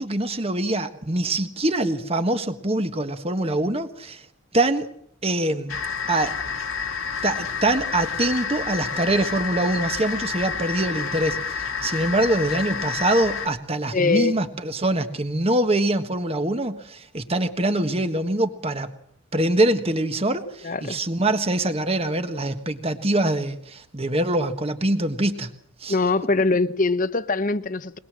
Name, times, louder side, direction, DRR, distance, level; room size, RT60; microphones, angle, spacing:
voice 1, 0.0-4.2 4.5-4.9 5.2-5.8 6.1-6.3 7.2-18.9 19.3-25.5 25.8-26.0, right 1 dB, 30° right, 1.4 m, -24 dB
sound 1, 5.7-13.5, left 6 dB, 80° left, 1.8 m, -29 dB
voice 2, 13.9-14.3 20.6-21.0 25.9-28.0, left 3 dB, 40° left, 0.9 m, -22 dB
22.0 x 21.0 x 7.5 m
head